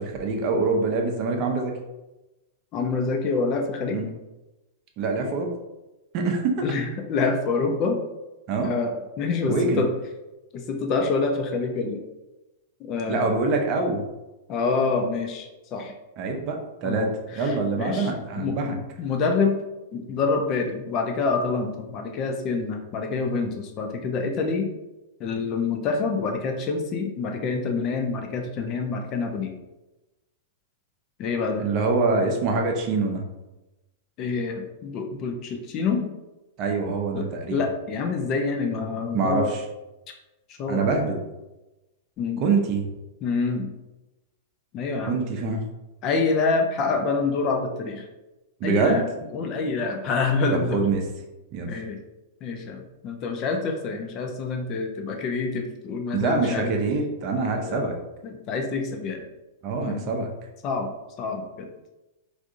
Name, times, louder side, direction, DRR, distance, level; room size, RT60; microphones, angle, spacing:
voice 1, 0.0-1.8 3.9-4.1 5.0-5.5 6.1-6.6 8.5-8.7 9.5-9.8 13.1-14.0 16.2-18.7 31.6-33.2 36.6-37.6 39.1-39.6 40.7-41.2 42.4-42.9 45.1-45.6 48.6-49.0 50.5-51.0 51.5-51.7 56.1-57.9 59.6-60.3, right 3 dB, 45° right, 2 dB, 0.6 m, -25 dB
voice 2, 2.7-4.0 6.6-8.0 8.6-9.9 10.5-12.0 12.8-13.5 14.5-15.9 16.8-18.1 18.4-19.6 19.9-24.7 25.2-29.5 31.2-31.6 34.2-36.1 37.1-37.2 37.5-39.5 40.6-40.9 42.2-42.4 43.2-43.7 44.7-45.2 46.0-48.0 48.6-49.0 49.3-50.8 51.7-52.0 52.4-56.7 57.7-57.9 58.2-59.2 59.8-60.1 60.6-60.9 61.2-61.7, left 4 dB, 40° left, 4 dB, 0.4 m, -27 dB
3.4 x 2.5 x 2.5 m, 1.0 s
hypercardioid pair, 105°, 0 cm